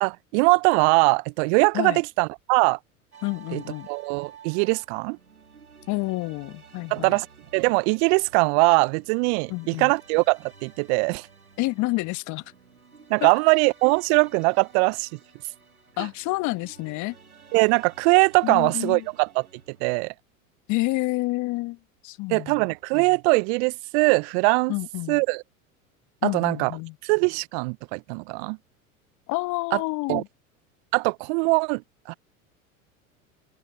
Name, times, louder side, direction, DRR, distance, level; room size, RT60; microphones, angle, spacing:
voice 1, 0.0-2.8 3.5-3.6 3.9-5.2 6.9-7.3 7.5-11.3 13.1-15.1 17.5-19.5 19.8-20.1 22.3-24.7 25.1-25.4 26.2-26.7 27.0-28.6 30.1-30.2 30.9-31.8 32.1-32.2, right 33 dB, 50° right, 0.9 m, -21 dB
sound 1, 3.1-19.8, right 6 dB, 90° right, 3.5 m, -52 dB
voice 2, 3.2-3.9 5.9-7.2 9.5-9.9 11.6-12.4 13.2-13.3 16.0-17.2 18.4-19.1 20.7-21.8 22.0-22.7 24.7-25.2 26.2-27.0 29.3-30.3, left 22 dB, 45° left, 1.3 m, -29 dB
open air
figure-of-eight pair, 85°, 43 cm